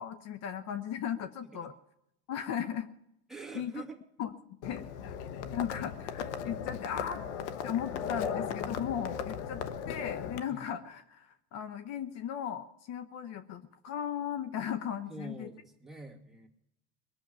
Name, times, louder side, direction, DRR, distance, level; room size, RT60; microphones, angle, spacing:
voice 1, 0.0-1.7 2.3-2.9 3.5-3.8 4.2-4.9 5.5-7.2 7.6-15.5, left 9 dB, 50° left, 10 dB, 1.0 m, -37 dB
voice 2, 3.3-4.0 10.5-10.6 15.1-16.5, right 3 dB, ahead, -1 dB, 2.2 m, -45 dB
Livestock farm animals working animals, 4.6-10.4, left 7 dB, 80° left, 1.2 m, -37 dB
20.5 x 7.1 x 9.3 m, 0.81 s
supercardioid pair, 110°, 34 cm